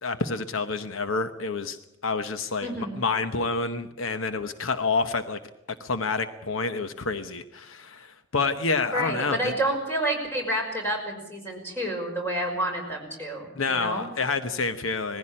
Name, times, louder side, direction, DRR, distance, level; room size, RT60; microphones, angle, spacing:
voice 1, 0.0-1.8 2.0-5.4 5.8-9.5 13.6-15.2, left 4 dB, 75° left, 10 dB, 1.0 m, -28 dB
voice 2, 2.6-3.1 8.9-14.1, right 1 dB, 10° left, 1 dB, 5.5 m, -29 dB
20.5 x 15.5 x 8.7 m, 0.87 s
head